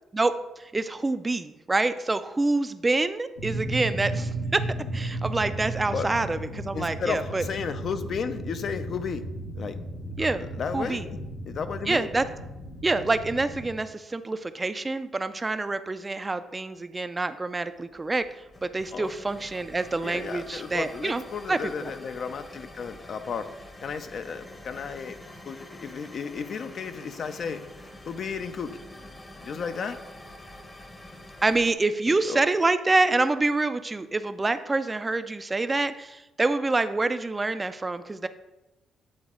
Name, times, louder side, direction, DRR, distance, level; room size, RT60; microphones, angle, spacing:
voice 1, 0.6-4.6 4.9-7.4 10.2-10.4 10.7-11.0 11.9-12.2 12.8-18.3 18.6-21.2 21.5-21.9 31.4-38.3, right 3 dB, 20° right, 11 dB, 0.3 m, -26 dB
sound 1, 3.4-13.7, right 1 dB, 85° left, 1.3 m, -35 dB
voice 2, 6.7-9.3 9.6-9.8 10.2-10.3 10.5-11.2 11.5-12.1 18.9-19.1 20.0-23.5 23.8-27.6 28.1-28.8 29.4-30.0 32.1-32.4, left 6 dB, 55° left, 10 dB, 0.5 m, -33 dB
sound 2, 17.8-31.7, left 1 dB, 20° left, 0.8 m, -46 dB
8.7 x 4.1 x 3.7 m, 1.0 s
cardioid pair, 90°, 0 cm